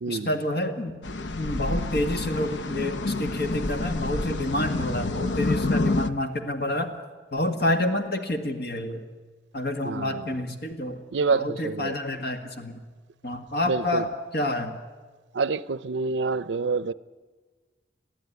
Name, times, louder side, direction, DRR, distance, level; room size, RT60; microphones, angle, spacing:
voice 1, 0.1-0.9 1.3-6.9 7.3-9.1 9.5-11.0 11.3-12.8 13.2-14.8, left 1 dB, 60° left, 1.9 m, -28 dB
sound 1, 1.0-6.1, left 2 dB, 85° left, 0.8 m, -28 dB
voice 2, 9.8-10.4 11.1-12.0 13.7-14.0 15.3-16.9, right 4 dB, 90° right, 0.5 m, -27 dB
22.5 x 15.0 x 9.6 m
head